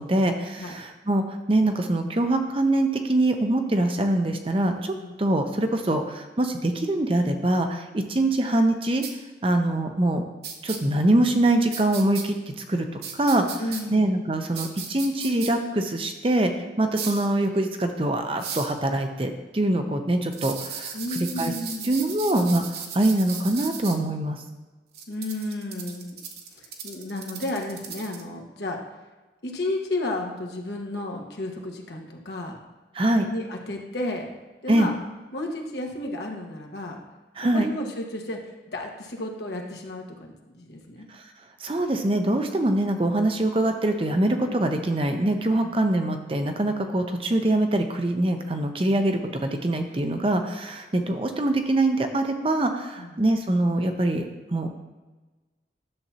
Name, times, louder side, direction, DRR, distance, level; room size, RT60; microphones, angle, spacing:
voice 1, 0.0-9.0 9.4-10.2 10.6-13.6 13.9-21.5 21.8-24.4 32.9-33.3 34.7-34.9 37.4-37.7 41.1-41.2 41.6-54.2 54.5-54.7, right 1 dB, 30° right, 5 dB, 0.6 m, -24 dB
sound 1, 9.0-9.1 10.4-10.8 11.7-12.2 13.0-13.8 14.6-15.5 16.9-17.3 18.4-18.7 20.3-24.0 24.9-28.2, right 7 dB, 60° right, 0.8 m, -36 dB
voice 2, 13.6-14.1 20.9-22.1 25.1-26.1 26.6-28.8 29.4-32.6 33.3-34.3 34.6-35.0 35.3-37.0 37.4-38.4 38.7-41.1 45.6-45.7 53.0-53.1, left 1 dB, 70° left, 1 dB, 1.3 m, -32 dB
11.0 x 7.1 x 2.8 m, 1.2 s
head